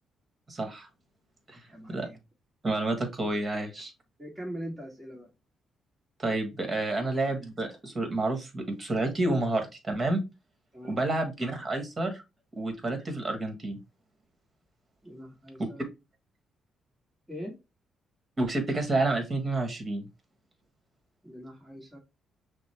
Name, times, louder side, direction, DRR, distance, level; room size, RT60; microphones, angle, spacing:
voice 1, 0.5-0.9 1.5-1.6 1.9-2.1 2.6-3.9 6.2-10.2 10.9-12.2 12.6-13.8 18.4-20.1, right 2 dB, 30° right, 5 dB, 1.5 m, -29 dB
voice 2, 1.7-2.2 3.5-3.7 4.2-5.3 7.0-7.3 10.7-11.0 15.0-15.8 17.3-17.6 21.2-22.0, equal, 10° right, -2 dB, 1.6 m, -42 dB
6.0 x 2.2 x 3.3 m, 0.24 s
cardioid pair, 90°, 0 cm